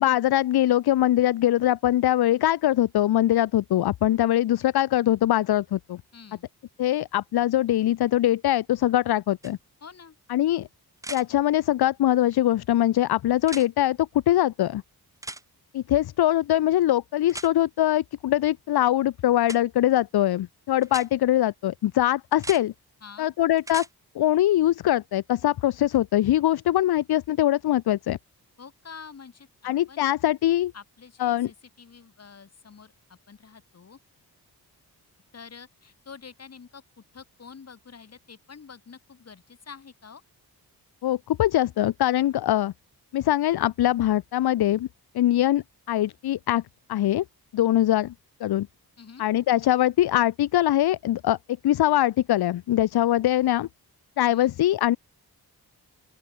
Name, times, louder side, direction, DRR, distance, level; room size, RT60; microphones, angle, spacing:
voice 1, 0.0-6.0 6.8-9.6 10.3-10.7 11.1-14.8 15.7-22.7 23.2-23.9 24.2-28.2 29.6-30.7 31.2-31.5 41.0-42.7 43.1-44.9 45.1-46.6 46.9-47.2 47.5-48.1 48.4-48.7 49.2-51.4 51.6-53.7 54.2-55.0, left 13 dB, 75° left, 0.6 m, -22 dB
voice 2, 6.1-6.5 9.8-10.2 23.0-23.3 28.6-30.0 30.7-34.0 35.3-40.2 49.0-49.2 54.3-54.5, left 6 dB, 40° left, 2.2 m, -47 dB
sound 1, 9.4-9.5 11.0-11.2 13.4-13.7 15.2-15.4 17.3-17.5 19.4-19.6 20.8-21.1 22.3-22.6 23.6-23.9 25.9-26.0, right 2 dB, 10° right, 0.5 m, -37 dB
open air
wide cardioid pair, 150°, 38 cm